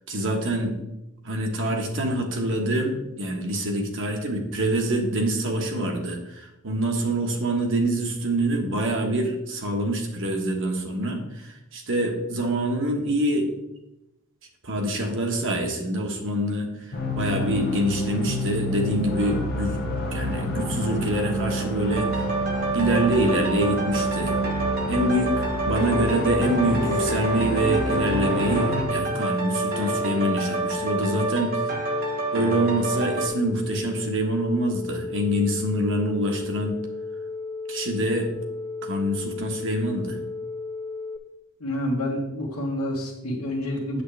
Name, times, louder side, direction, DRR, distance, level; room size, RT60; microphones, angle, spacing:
voice 1, 0.1-0.7 1.2-13.5 14.6-19.8 20.1-22.3 22.7-24.4 24.9-25.3 25.6-31.8 32.3-36.8 37.7-38.3 38.8-40.2, right 1 dB, 60° right, 3 dB, 1.4 m, -25 dB
sound 1, 16.9-28.8, equal, 50° left, 1.0 m, -28 dB
sound 2, 21.9-33.3, right 2 dB, 45° right, 1.2 m, -28 dB
sound 3, 24.2-41.2, left 3 dB, 20° left, 0.5 m, -35 dB
voice 2, 41.6-44.0, left 1 dB, 85° left, -6 dB, 1.4 m, -28 dB
8.1 x 7.5 x 3.4 m, 0.92 s
head